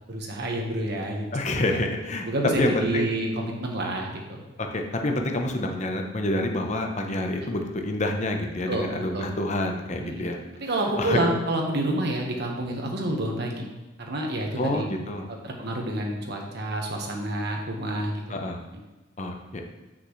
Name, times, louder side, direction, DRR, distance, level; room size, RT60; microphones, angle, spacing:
voice 1, 0.1-1.8 2.2-4.4 7.3-7.5 8.7-8.9 9.1-9.3 10.0-10.3 10.5-13.6 14.0-14.9 15.3-18.4, right 1 dB, 60° right, 1 dB, 1.3 m, -29 dB
voice 2, 1.3-2.3 2.6-3.1 4.7-10.4 11.0-11.2 14.6-15.3 18.3-18.6 19.2-19.6, left 1 dB, 40° left, 3 dB, 0.9 m, -27 dB
8.4 x 6.0 x 3.2 m, 1.1 s
head